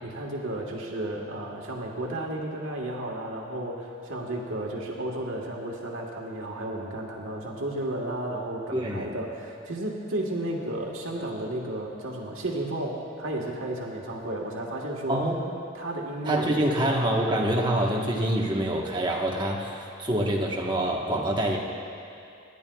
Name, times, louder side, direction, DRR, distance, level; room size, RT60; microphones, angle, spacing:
voice 1, 0.0-15.3 15.7-16.6, right 1 dB, 85° right, -1 dB, 1.4 m, -33 dB
voice 2, 8.7-9.1 15.1-15.4 16.2-21.6, right 1 dB, 25° right, -2 dB, 1.2 m, -26 dB
26.0 x 10.5 x 2.3 m, 2.5 s
head